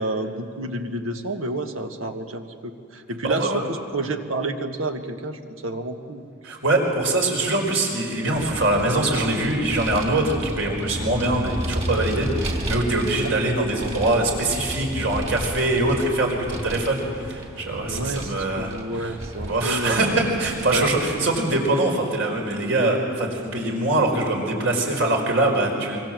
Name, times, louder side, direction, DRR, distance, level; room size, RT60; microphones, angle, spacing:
voice 1, 0.0-6.2 17.9-20.2 20.7-20.9, right 2 dB, 90° right, 6 dB, 1.8 m, -30 dB
voice 2, 3.2-3.7 6.4-19.1 19.5-26.0, right 2 dB, 70° right, 1 dB, 4.9 m, -23 dB
Vehicle, 8.3-21.6, equal, 30° right, 2.7 m, -33 dB
25.0 x 24.0 x 7.7 m, 2.4 s
head